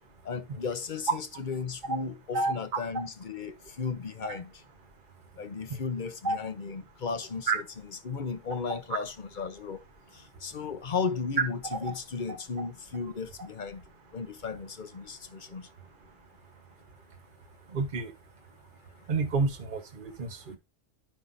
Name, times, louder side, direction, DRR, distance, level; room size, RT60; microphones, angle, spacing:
voice 1, 0.2-4.5 5.4-7.6 8.0-9.8 10.4-13.8 14.1-15.7, left 5 dB, 50° left, 0.9 m, -35 dB
voice 2, 17.7-18.1 19.1-20.6, right 3 dB, 50° right, 1.3 m, -30 dB
11.5 x 5.6 x 2.6 m
omnidirectional pair, 1.2 m